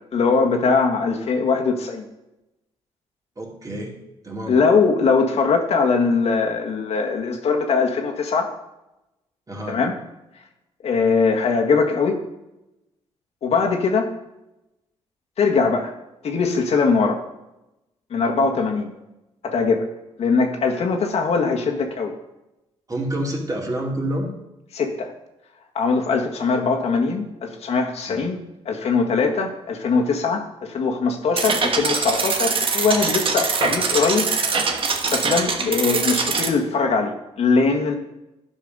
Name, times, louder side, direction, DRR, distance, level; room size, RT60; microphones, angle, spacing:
voice 1, 0.1-2.0 4.5-8.5 9.7-9.9 10.8-12.2 13.4-14.1 15.4-15.9 16.2-17.2 18.1-18.9 19.4-19.9 20.2-22.1 24.7-25.1 25.7-28.4 28.6-34.3 34.9-38.0, left 4 dB, 60° left, 2 dB, 1.5 m, -21 dB
voice 2, 3.4-4.0 4.2-4.6 9.5-9.8 22.9-24.3 28.1-28.2, right 1 dB, 30° right, -1 dB, 2.7 m, -28 dB
sound 1, 31.4-36.5, right 4 dB, 50° right, 1.3 m, -23 dB
11.0 x 5.6 x 5.4 m, 0.94 s
cardioid pair, 75°, 12 cm